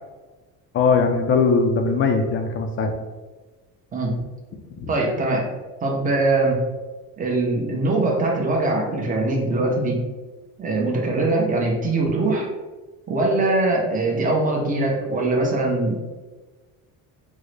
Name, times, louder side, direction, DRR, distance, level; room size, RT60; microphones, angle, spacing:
voice 1, 0.7-2.9 4.7-4.9, left 4 dB, 35° left, 5 dB, 0.4 m, -20 dB
voice 2, 4.9-5.4 5.8-6.6 7.2-10.0 10.6-12.5 13.1-16.0, right 2 dB, 20° right, -1 dB, 0.6 m, -22 dB
3.7 x 2.0 x 3.2 m, 1.3 s
cardioid pair, 125°, 38 cm